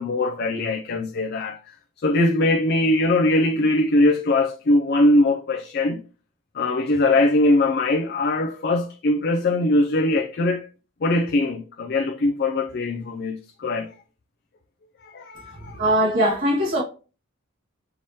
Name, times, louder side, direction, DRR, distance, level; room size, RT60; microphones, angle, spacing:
voice 1, 0.0-1.8 2.0-6.0 6.5-10.7 11.0-13.9 15.0-15.8, left 2 dB, 45° left, 0.4 m, -21 dB
voice 2, 15.6-16.8, right 1 dB, 60° right, 1.8 m, -21 dB
4.7 x 2.9 x 2.9 m
head